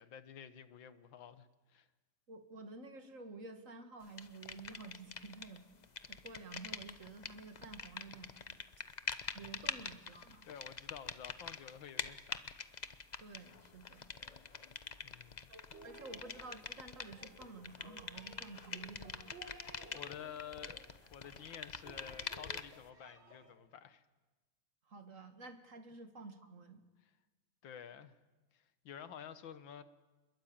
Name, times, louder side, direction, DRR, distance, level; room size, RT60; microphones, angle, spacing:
voice 1, 0.0-1.9 10.5-12.5 15.0-15.5 19.7-20.8 21.1-24.0 27.0-27.1 27.6-28.2 28.5-29.8, left 8 dB, 85° left, 1.9 m, -51 dB
voice 2, 2.3-5.7 6.1-8.6 9.3-10.5 13.2-14.1 15.5-19.3 24.9-26.8, right 3 dB, 45° right, 2.3 m, -51 dB
sound 1, 4.2-5.6 5.8-22.9, left 5 dB, 45° left, 0.5 m, -45 dB
sound 2, 15.7-23.5, right 2 dB, 85° right, 6.0 m, -57 dB
27.5 x 21.5 x 8.8 m
omnidirectional pair, 2.0 m